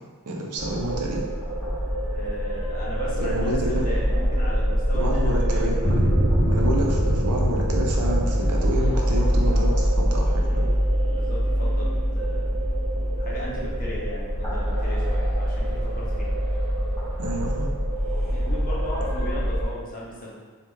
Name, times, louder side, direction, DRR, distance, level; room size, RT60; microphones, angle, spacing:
voice 1, 0.3-1.2 3.2-3.9 4.9-6.0 6.5-10.6 17.2-17.7, right 1 dB, 85° right, -1 dB, 0.6 m, -29 dB
sound 1, 0.6-19.6, equal, 20° left, 1.2 m, -24 dB
voice 2, 2.0-6.0 10.4-10.7 11.1-12.5 13.2-16.3 18.3-20.3, left 1 dB, 40° left, -5 dB, 0.7 m, -37 dB
3.4 x 2.4 x 3.0 m, 1.5 s
head